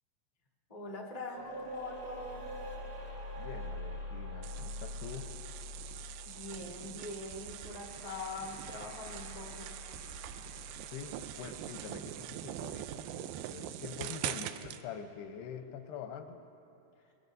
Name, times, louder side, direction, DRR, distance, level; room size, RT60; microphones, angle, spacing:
voice 1, 0.7-2.5 6.2-9.7, left 2 dB, 65° left, -2 dB, 0.3 m, -43 dB
sound 1, 1.3-12.4, left 1 dB, 45° right, 1.2 m, -45 dB
voice 2, 3.4-5.3 10.8-16.4, left 7 dB, 85° left, 6 dB, 2.9 m, -45 dB
sound 2, 4.4-14.8, right 12 dB, 85° right, 2.0 m, -43 dB
24.5 x 21.0 x 2.7 m, 2.8 s
omnidirectional pair, 4.5 m